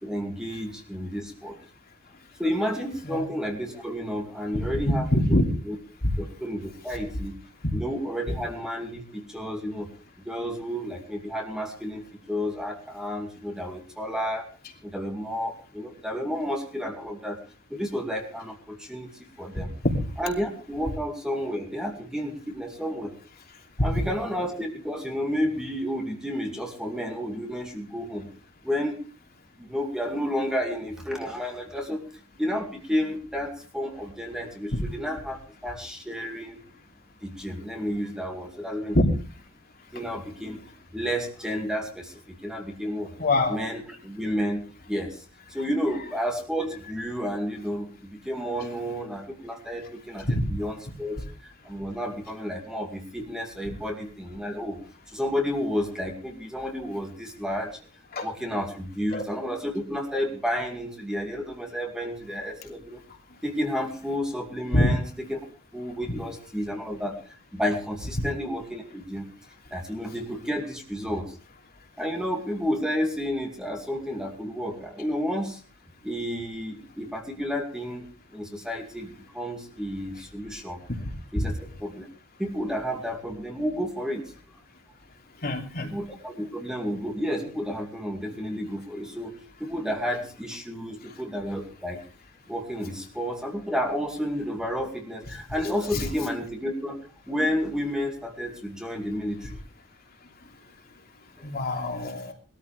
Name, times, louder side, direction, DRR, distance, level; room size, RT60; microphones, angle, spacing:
voice 1, 0.0-1.6 2.4-5.8 6.2-7.3 7.7-9.9 10.2-14.5 14.8-17.4 17.7-19.7 20.2-23.1 23.8-28.3 28.6-29.0 29.6-32.0 32.4-35.4 35.6-36.6 37.2-39.0 39.9-40.6 40.9-43.1 43.5-44.6 44.9-45.2 45.5-54.8 55.1-57.8 58.2-63.0 63.4-65.4 65.7-67.2 67.5-69.3 69.7-71.4 72.0-75.6 76.0-80.8 81.3-82.1 82.4-84.3 85.8-89.3 89.6-92.0 92.5-99.6 101.4-101.5, equal, 5° right, 2 dB, 2.2 m, -31 dB
voice 2, 5.1-5.4 19.8-20.0 38.9-39.1 43.2-43.6 50.3-50.5 58.1-58.3 59.1-59.3 64.7-64.9 85.4-85.9 95.9-96.0 101.4-102.3, left 1 dB, 45° left, 1 dB, 2.9 m, -23 dB
20.5 x 13.5 x 3.4 m, 0.37 s
head